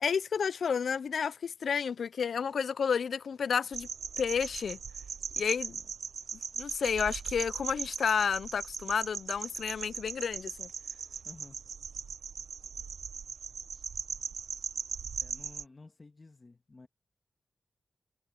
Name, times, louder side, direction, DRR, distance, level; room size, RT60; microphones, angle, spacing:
voice 1, 0.0-3.9 4.2-4.8 5.4-5.8 6.6-10.7, left 6 dB, 80° left, 0.3 m, -31 dB
sound 1, 3.7-15.6, right 6 dB, 80° right, 0.7 m, -39 dB
voice 2, 11.2-11.6 15.2-16.9, left 3 dB, 30° left, 1.6 m, -53 dB
wide cardioid pair, 145°, 0 cm